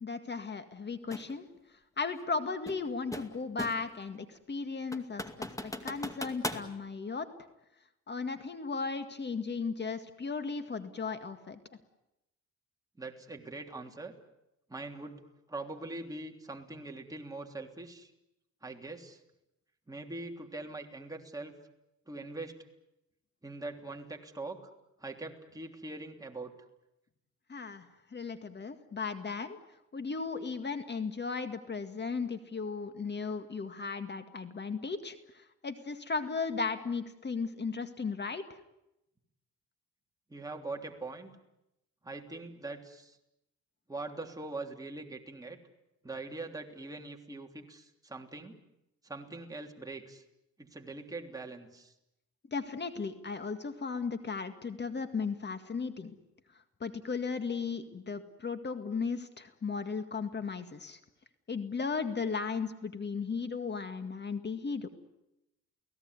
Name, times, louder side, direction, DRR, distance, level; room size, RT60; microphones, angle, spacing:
voice 1, 0.0-1.5 2.0-7.3 8.1-11.6 27.5-27.9 28.1-29.6 29.9-38.4 52.5-56.1 56.8-61.0 61.5-64.9, left 4 dB, 35° left, 9 dB, 2.0 m, -36 dB
Mlácení do skříně, 1.1-1.3 2.7-4.0 4.4-4.5 4.9-6.7, left 1 dB, 10° left, 2.3 m, -39 dB
voice 2, 13.0-14.1 14.7-15.2 15.5-18.1 18.6-19.2 19.9-21.5 22.1-22.5 23.4-24.7 25.0-26.5 40.3-41.4 42.0-43.2 43.9-45.6 46.0-48.5 49.0-50.2 50.6-51.9, right 2 dB, 10° right, 2 dB, 3.2 m, -42 dB
30.0 x 18.0 x 9.7 m, 0.90 s
cardioid pair, 90°, 30 cm